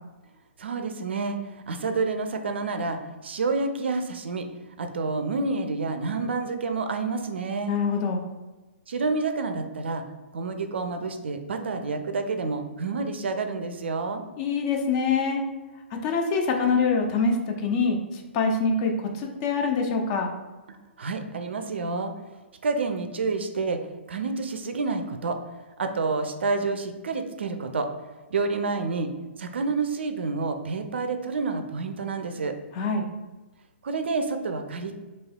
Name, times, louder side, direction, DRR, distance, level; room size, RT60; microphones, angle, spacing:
voice 1, 0.6-4.5 4.8-7.7 8.9-10.0 10.3-14.2 20.7-22.1 22.6-25.4 25.8-27.9 28.3-29.1 29.4-32.5 33.8-35.0, right 3 dB, 60° right, 7 dB, 0.4 m, -29 dB
voice 2, 7.7-8.2 14.4-15.4 15.9-20.3 32.7-33.1, left 4 dB, 30° left, 2 dB, 0.4 m, -25 dB
3.1 x 2.7 x 2.2 m, 1.2 s
figure-of-eight pair, 125°, 7 cm